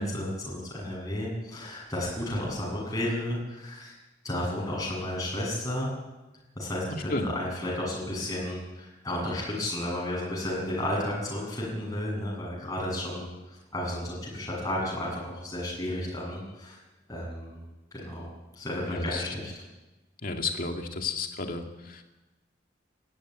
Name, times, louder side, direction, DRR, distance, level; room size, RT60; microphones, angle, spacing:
voice 1, 0.0-3.9 4.2-5.9 6.6-16.8 17.1-17.6 17.9-18.3 18.6-19.6, left 1 dB, 20° left, -4 dB, 7.7 m, -32 dB
voice 2, 18.8-19.2 20.2-22.0, left 3 dB, 50° left, 3 dB, 2.3 m, -32 dB
19.5 x 14.5 x 9.2 m, 1.1 s
head